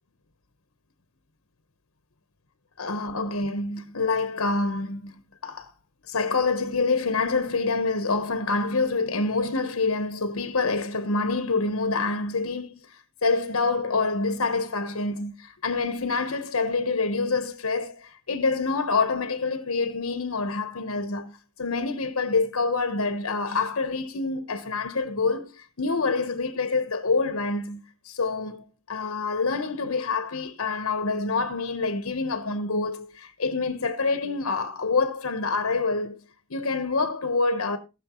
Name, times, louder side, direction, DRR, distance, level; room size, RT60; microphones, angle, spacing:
voice 1, 2.8-5.7 6.1-36.2 36.5-37.8, left 3 dB, 75° left, 1.1 m, -27 dB
19.0 x 6.5 x 3.1 m
head